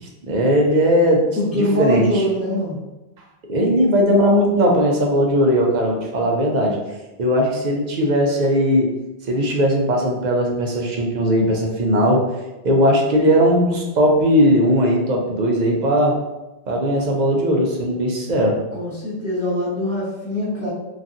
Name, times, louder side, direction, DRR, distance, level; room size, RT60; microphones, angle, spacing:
voice 1, 0.0-1.3 1.5-2.0 3.5-6.8 7.2-8.9 9.3-12.2 12.6-16.2 16.7-18.6, equal, 50° right, -1 dB, 0.6 m, -18 dB
voice 2, 1.4-2.8 18.7-20.7, left 1 dB, 15° right, -8 dB, 0.8 m, -23 dB
3.1 x 2.6 x 2.5 m, 1.0 s
omnidirectional pair, 1.1 m